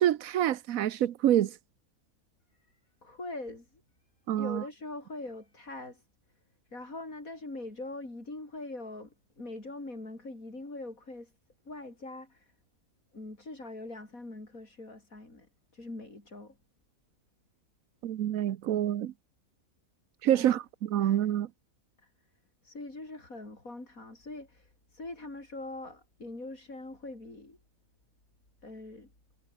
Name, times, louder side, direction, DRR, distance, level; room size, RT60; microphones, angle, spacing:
voice 1, 0.0-1.5 4.3-4.6 18.0-19.1 20.2-21.5, right 11 dB, 75° right, 1.2 m, -27 dB
voice 2, 3.0-3.8 4.3-6.0 6.7-11.3 11.6-12.5 13.1-16.6 20.3-20.5 21.0-21.2 22.0-22.1 22.6-27.6 28.6-29.1, left 2 dB, 80° left, 6.3 m, -43 dB
omnidirectional pair, 1.5 m